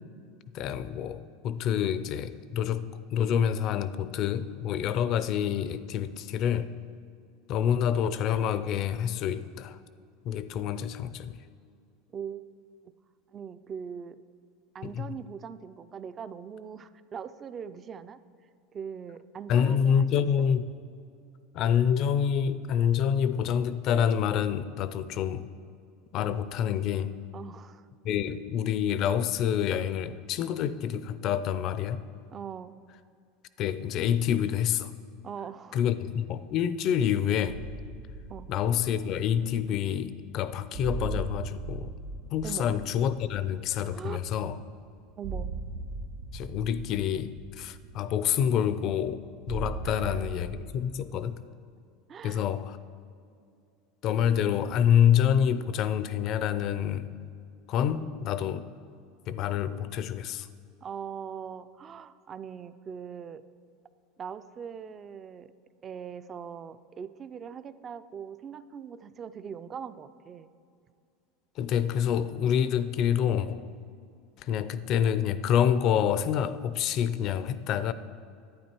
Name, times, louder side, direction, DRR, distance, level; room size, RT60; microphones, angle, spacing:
voice 1, 0.5-6.7 7.5-9.8 10.2-11.3 14.8-15.1 19.5-20.7 21.5-25.5 26.1-27.1 28.0-32.0 33.6-34.9 35.7-37.6 38.5-41.9 42.3-44.6 46.3-51.4 52.2-52.8 54.0-57.1 57.7-58.6 59.3-60.5 71.6-73.6 74.4-77.9, left 9 dB, 45° left, 14 dB, 0.5 m, -27 dB
voice 2, 12.1-12.5 13.3-14.2 14.7-18.2 18.7-20.1 20.4-20.5 27.3-27.9 32.3-32.8 35.2-35.8 38.3-38.5 42.4-42.7 43.9-44.2 45.2-45.5 49.8-50.2 52.1-52.4 57.9-58.1 60.8-63.4 64.2-65.5 65.8-70.5, right 7 dB, 30° right, 13 dB, 0.4 m, -41 dB
sound 1, 37.4-50.7, right 3 dB, 75° right, 1.4 m, -40 dB
11.5 x 9.0 x 4.5 m, 2.4 s
supercardioid pair, 135°, 0 cm